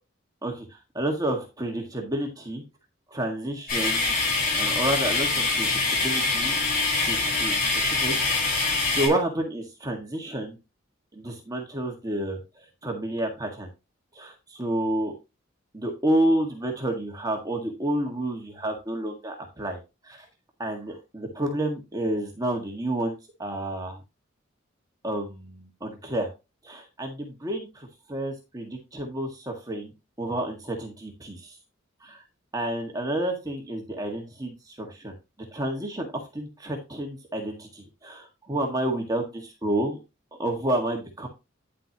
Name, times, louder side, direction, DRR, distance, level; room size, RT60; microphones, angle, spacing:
voice 1, 0.4-2.6 3.1-4.1 4.5-6.6 6.9-10.6 11.1-13.7 14.1-15.1 15.7-19.8 20.0-20.2 20.6-23.1 23.4-24.0 25.0-26.3 26.6-29.9 30.2-31.6 32.0-32.2 32.5-35.1 35.5-40.0 40.4-41.3, right 1 dB, 20° right, 2 dB, 1.7 m, -30 dB
sound 1, 3.7-9.1, left 3 dB, 45° left, 4.9 m, -24 dB
10.0 x 7.5 x 2.9 m, 0.25 s
head